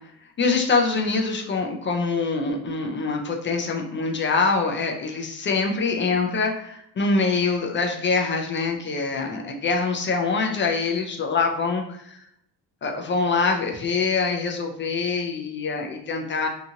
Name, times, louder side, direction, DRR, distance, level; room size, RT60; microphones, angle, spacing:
voice 1, 0.4-12.2 12.8-16.5, left 4 dB, 30° left, 3 dB, 0.4 m, -24 dB
2.8 x 2.4 x 2.7 m, 0.74 s
cardioid pair, 110°, 42 cm